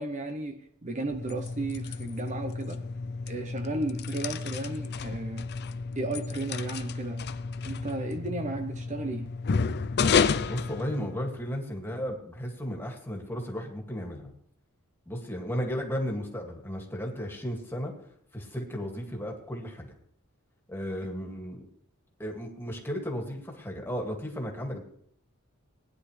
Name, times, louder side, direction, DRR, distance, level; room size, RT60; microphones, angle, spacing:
voice 1, 0.0-2.8 3.3-5.5 6.0-7.3 7.6-9.3, right 2 dB, 35° right, 6 dB, 0.9 m, -34 dB
sound 1, 1.0-11.5, left 5 dB, 50° left, 0.5 m, -31 dB
voice 2, 10.4-14.3 15.1-17.9 18.3-19.9 20.7-21.6 22.2-24.8, equal, 10° left, 1 dB, 2.2 m, -34 dB
19.5 x 10.0 x 3.3 m, 0.66 s
head